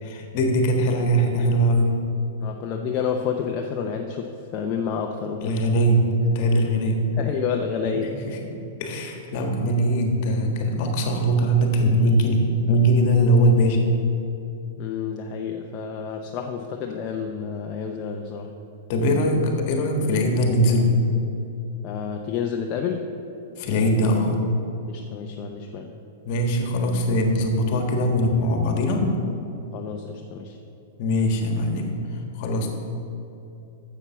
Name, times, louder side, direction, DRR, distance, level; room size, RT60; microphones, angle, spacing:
voice 1, 0.0-1.9 5.4-7.0 8.8-13.8 18.9-20.9 23.6-24.4 26.2-29.1 31.0-32.7, equal, 50° left, 3 dB, 1.5 m, -21 dB
voice 2, 2.4-5.6 7.2-8.2 14.8-18.5 21.8-23.1 24.9-26.0 29.7-30.6 32.4-32.7, left 6 dB, 35° left, 2 dB, 0.6 m, -29 dB
7.2 x 7.0 x 7.0 m, 2.9 s
hypercardioid pair, 135°, 0 cm